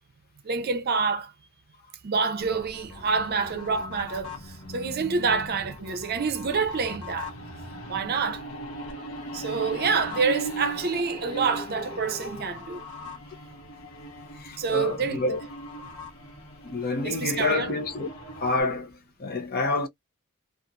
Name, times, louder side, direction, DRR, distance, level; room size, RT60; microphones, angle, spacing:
voice 1, 0.4-1.3 2.0-7.3 7.9-8.4 9.3-12.8 14.6-15.2 17.0-17.7, right 5 dB, 45° right, 0.6 m, -27 dB
sound 1, 2.4-18.6, equal, 70° left, 1.0 m, -39 dB
voice 2, 14.3-15.4 16.6-18.1 18.4-19.9, left 3 dB, 45° left, 0.7 m, -28 dB
2.9 x 2.4 x 2.5 m
head